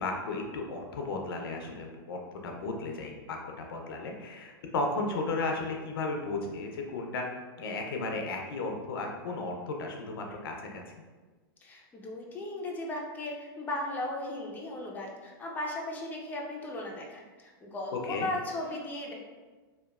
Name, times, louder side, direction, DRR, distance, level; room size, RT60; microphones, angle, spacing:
voice 1, 0.0-7.3 7.6-11.0 17.9-18.3, left 3 dB, 75° left, 2 dB, 0.5 m, -34 dB
voice 2, 11.6-19.1, left 1 dB, 15° left, -1 dB, 0.4 m, -36 dB
2.9 x 2.2 x 2.3 m, 1.3 s
hypercardioid pair, 110°, 12 cm